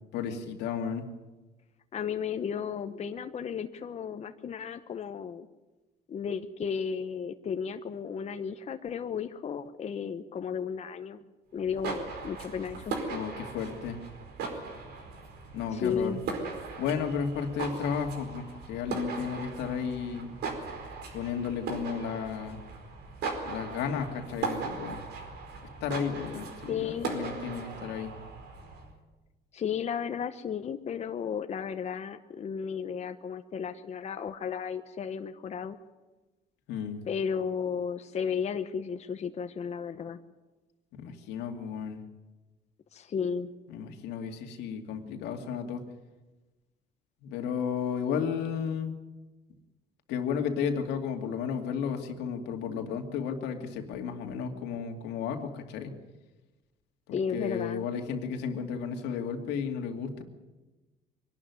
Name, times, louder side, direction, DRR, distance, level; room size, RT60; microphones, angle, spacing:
voice 1, 0.1-1.1 13.1-14.0 15.5-16.2 16.8-20.3 21.1-22.6 23.4-25.0 25.8-28.1 36.7-37.0 41.0-42.0 43.7-45.8 47.2-48.9 50.1-55.9 57.3-60.2, left 7 dB, 90° left, 4 dB, 2.5 m, -33 dB
voice 2, 1.9-5.5 6.1-11.2 11.5-12.9 15.7-16.2 26.7-27.2 29.5-35.8 37.0-40.2 42.9-43.5 57.1-57.9, left 7 dB, 40° left, 7 dB, 1.0 m, -34 dB
sound 1, 11.6-28.9, right 4 dB, 75° right, 4.8 m, -38 dB
23.5 x 12.0 x 9.6 m, 1.2 s
cardioid pair, 110°, 17 cm